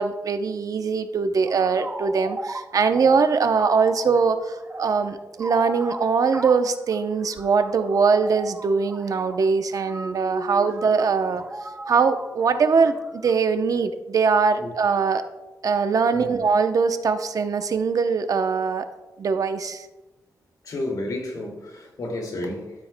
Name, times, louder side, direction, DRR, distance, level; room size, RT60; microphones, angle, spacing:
voice 1, 0.0-11.4 11.9-15.2 15.6-18.9 19.2-19.8, right 5 dB, 65° right, 0.7 m, -22 dB
sound 1, 1.4-13.3, right 2 dB, 25° right, 0.6 m, -37 dB
voice 2, 20.6-22.7, left 1 dB, 70° left, 2.2 m, -31 dB
12.5 x 8.3 x 2.2 m
cardioid pair, 80°, 7 cm